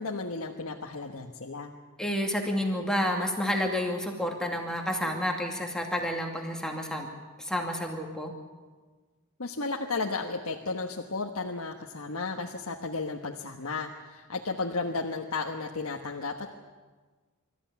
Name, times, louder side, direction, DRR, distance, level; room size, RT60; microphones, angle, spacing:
voice 1, 0.0-1.7 9.4-16.5, left 3 dB, 80° left, 1 dB, 1.3 m, -33 dB
voice 2, 2.0-7.1 7.4-8.3, equal, 5° left, 1 dB, 2.5 m, -30 dB
24.5 x 14.5 x 9.5 m, 1.4 s
head